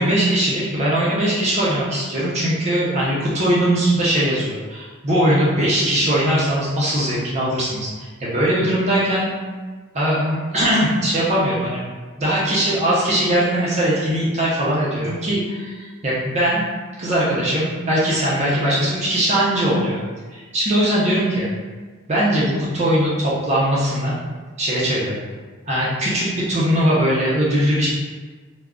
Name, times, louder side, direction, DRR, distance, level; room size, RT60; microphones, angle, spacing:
voice 1, 0.0-9.3 9.9-11.8 12.2-16.6 17.0-20.0 20.3-21.5 22.1-24.1 24.6-25.2 25.7-27.9, right 1 dB, 30° right, -7 dB, 0.5 m, -20 dB
2.3 x 2.0 x 3.5 m, 1.4 s
head